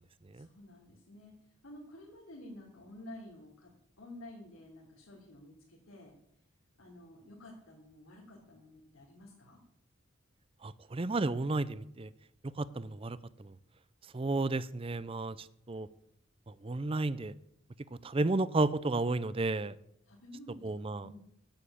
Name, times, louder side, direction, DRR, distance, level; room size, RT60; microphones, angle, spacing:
voice 1, 0.3-1.3 1.6-3.7 4.0-6.1 6.8-9.6 20.0-21.2, left 1 dB, 85° left, -5 dB, 3.4 m, -51 dB
voice 2, 10.6-12.1 12.6-13.5 14.1-15.9 16.5-17.3 18.0-19.8 20.6-21.1, right 2 dB, 25° right, 17 dB, 0.5 m, -32 dB
9.1 x 9.0 x 8.6 m, 0.74 s
head